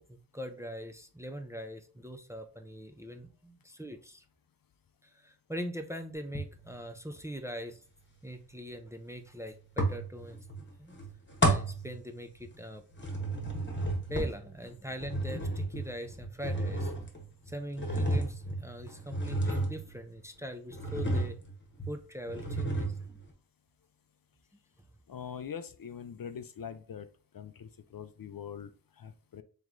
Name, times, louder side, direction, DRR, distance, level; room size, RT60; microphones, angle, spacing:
voice 1, 0.0-4.2 5.1-7.8 8.2-10.4 10.8-11.0 11.4-12.8 14.1-16.9 17.5-21.4 21.9-23.2, equal, 5° right, 6 dB, 0.4 m, -42 dB
sound 1, 6.3-6.8 9.8-10.6 10.9-12.6 12.9-20.2 20.7-21.5 21.8-21.9 22.3-23.2, right 1 dB, 30° left, 1.2 m, -32 dB
voice 2, 25.1-27.1 27.3-29.4, left 7 dB, 60° left, 11 dB, 0.5 m, -43 dB
3.4 x 3.1 x 3.7 m, 0.38 s
wide cardioid pair, 65°, 40 cm